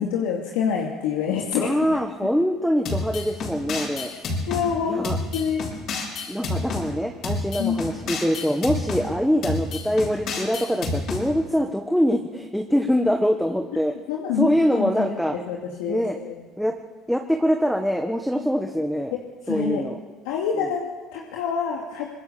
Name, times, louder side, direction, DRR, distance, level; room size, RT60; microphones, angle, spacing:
voice 1, 0.0-2.0 4.5-5.0 5.3-5.7 7.6-7.8 14.1-15.2 15.5-16.4 19.1-19.8 20.2-22.2, left 7 dB, 90° left, -1 dB, 2.6 m, -27 dB
voice 2, 1.6-4.1 4.9-5.2 6.3-14.0 14.3-15.4 15.9-16.2 16.6-16.7 17.1-19.1 19.5-20.0 20.5-20.7, equal, ahead, 4 dB, 1.5 m, -24 dB
sound 1, 2.8-4.7 5.0-6.8 7.2-9.0 9.4-11.2, left 3 dB, 55° left, 6.8 m, -29 dB
25.0 x 21.0 x 7.0 m, 1.4 s
supercardioid pair, 105°, 0 cm